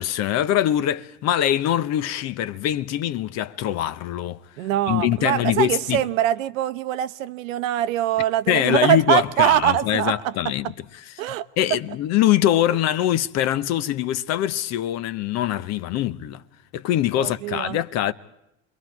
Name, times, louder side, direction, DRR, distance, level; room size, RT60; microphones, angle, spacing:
voice 1, 0.0-6.0 8.5-10.7 11.1-11.2 11.6-16.4 16.7-18.1, left 12 dB, 40° left, 0.8 m, -23 dB
voice 2, 4.6-10.3 11.2-11.5 17.2-17.8, right 12 dB, 70° right, 0.9 m, -23 dB
28.5 x 22.5 x 4.7 m
hypercardioid pair, 110°, 41 cm